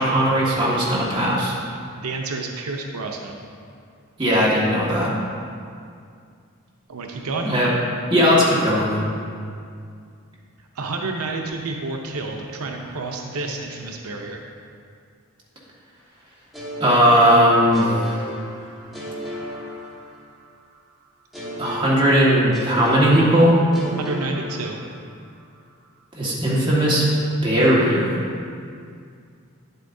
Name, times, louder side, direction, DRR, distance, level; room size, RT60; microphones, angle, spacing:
voice 1, 0.0-1.5 4.2-5.1 7.4-7.7 8.1-8.9 16.8-18.0 21.6-23.6 26.2-27.1 27.4-28.2, equal, 20° right, -7 dB, 1.7 m, -18 dB
voice 2, 2.0-3.4 6.9-7.5 10.6-14.4 24.0-24.8, right 3 dB, 85° right, 1 dB, 0.7 m, -29 dB
sound 1, 16.5-20.5 21.3-25.2, equal, ahead, 1.6 m, -35 dB
9.8 x 8.1 x 2.7 m, 2.3 s
head